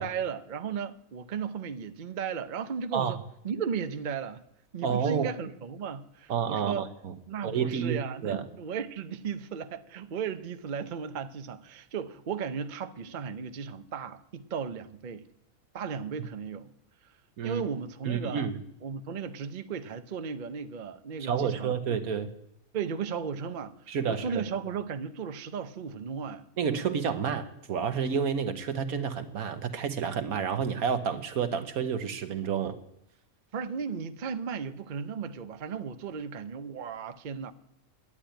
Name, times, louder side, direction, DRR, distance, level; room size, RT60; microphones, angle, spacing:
voice 1, 0.0-3.2 3.4-4.4 4.7-6.9 7.3-15.3 15.7-16.7 17.0-17.2 17.4-18.5 18.8-22.0 22.7-26.5 33.5-37.5, right 6 dB, 45° right, 0.7 m, -35 dB
voice 2, 4.8-5.3 6.3-6.9 7.4-8.4 17.4-17.6 18.1-18.6 21.2-22.3 23.9-24.2 26.6-32.8, right 7 dB, 75° right, 1.4 m, -29 dB
11.0 x 10.0 x 9.1 m
omnidirectional pair, 1.5 m